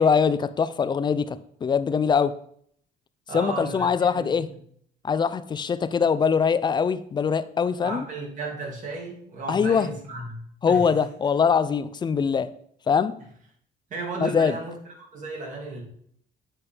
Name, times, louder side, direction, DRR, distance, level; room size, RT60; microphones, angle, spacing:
voice 1, 0.0-1.4 1.6-2.4 3.3-4.5 5.0-8.1 9.5-9.9 10.6-12.5 12.9-13.2 14.2-14.6, left 6 dB, 25° left, 0.4 m, -22 dB
voice 2, 3.3-4.3 7.8-10.4 10.6-10.8 13.9-15.8, right 3 dB, 50° right, 2.1 m, -34 dB
8.6 x 4.3 x 3.4 m
cardioid pair, 110°, 17 cm